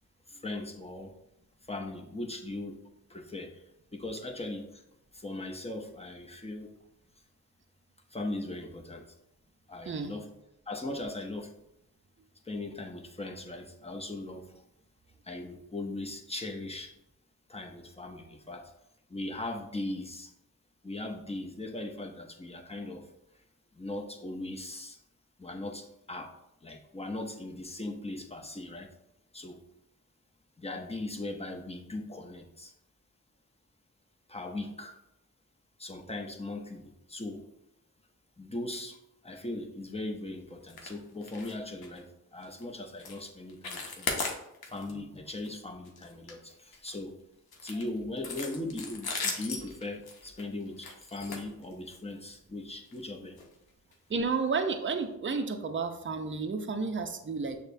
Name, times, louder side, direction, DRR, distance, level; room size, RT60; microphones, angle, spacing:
voice 1, 0.3-1.1 1.7-3.6 3.9-4.8 5.1-6.7 8.1-9.1 9.7-10.3 10.7-11.5 12.4-14.6 15.2-16.9 17.5-18.7 19.1-20.3 20.8-23.1 23.7-25.0 25.4-26.3 26.6-28.9 29.3-29.6 30.6-32.7 34.3-35.0 35.8-37.5 38.4-39.0 39.2-44.1 44.7-47.2 47.6-53.4, left 2 dB, 15° left, 2 dB, 0.7 m, -39 dB
sound 1, 40.7-40.9 41.2-41.5 41.8-42.0 42.4-42.6 43.0-43.2 43.5-44.9 45.3-45.5 45.9-47.0 47.5-52.1 52.9-53.0 53.4-53.5 53.9-54.0, left 4 dB, 90° left, 0.7 m, -37 dB
voice 2, 54.1-57.6, right 4 dB, 35° right, 6 dB, 0.5 m, -31 dB
6.3 x 2.1 x 2.6 m, 0.84 s
cardioid pair, 45°, 36 cm